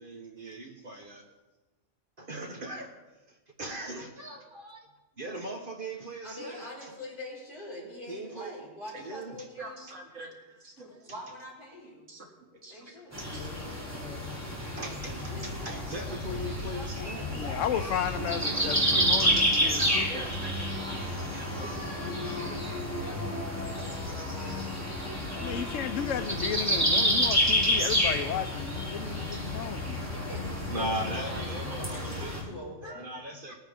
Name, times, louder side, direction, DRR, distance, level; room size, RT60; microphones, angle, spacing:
voice 1, 0.0-1.2 2.2-2.9 3.3-4.8 5.2-6.9 8.1-8.5 9.0-9.5 10.9-11.0 13.1-13.3 13.7-13.8 14.8-17.3 17.8-17.9 29.3-29.4 29.9-30.1 30.7-32.5 32.8-33.6, right 1 dB, 45° right, 2 dB, 1.3 m, -39 dB
voice 2, 6.2-9.9 11.0-12.1 12.7-13.2 14.7-17.6 21.3-23.8 24.1-24.7 25.5-25.7 30.1-33.1, left 1 dB, 40° left, -6 dB, 4.6 m, -45 dB
voice 3, 9.6-10.9 12.1-12.3 12.6-13.0 13.3-13.4 18.8-19.3 19.8-20.7 21.2-21.5, right 2 dB, 80° right, -1 dB, 2.4 m, -44 dB
sound 1, 13.1-32.4, equal, 10° right, 2.9 m, -30 dB
voice 4, 17.3-20.2 25.3-30.1 32.5-32.6, left 8 dB, 90° left, 11 dB, 1.0 m, -34 dB
20.5 x 9.4 x 3.6 m, 1.2 s
omnidirectional pair, 1.3 m